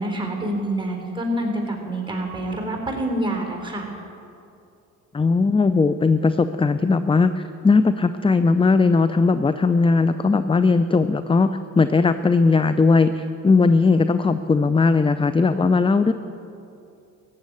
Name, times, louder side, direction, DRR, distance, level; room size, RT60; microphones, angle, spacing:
voice 1, 0.0-3.9, right 1 dB, 10° right, 2 dB, 3.8 m, -27 dB
voice 2, 5.1-11.5 11.8-16.1, left 4 dB, 15° left, 11 dB, 0.5 m, -18 dB
15.0 x 7.6 x 9.6 m, 2.7 s
supercardioid pair, 60°, 38 cm